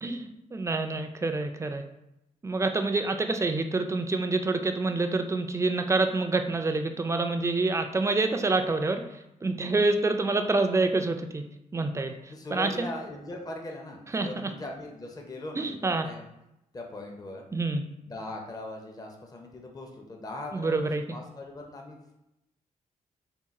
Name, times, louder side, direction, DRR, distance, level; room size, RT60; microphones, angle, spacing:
voice 1, 0.0-1.8 2.4-11.4 11.7-12.9 14.1-14.5 15.6-16.1 17.5-17.8 20.5-21.2, right 3 dB, 20° right, 6 dB, 0.3 m, -27 dB
voice 2, 12.3-16.3 16.7-17.5 18.0-22.1, left 1 dB, 25° left, 1 dB, 0.6 m, -40 dB
3.7 x 2.3 x 4.0 m, 0.87 s
wide cardioid pair, 105°, 14 cm